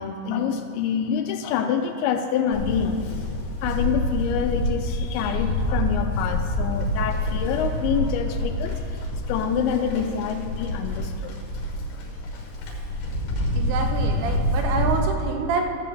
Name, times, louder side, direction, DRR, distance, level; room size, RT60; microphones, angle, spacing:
voice 1, 0.0-3.0 3.6-9.0 9.3-11.4, left 7 dB, 85° left, 6 dB, 2.8 m, -26 dB
Livestock farm animals working animals, 2.5-15.0, left 1 dB, 65° left, 3.1 m, -27 dB
voice 2, 13.5-15.7, right 4 dB, 80° right, 4 dB, 3.0 m, -27 dB
14.0 x 4.8 x 7.3 m, 2.5 s
omnidirectional pair, 5.3 m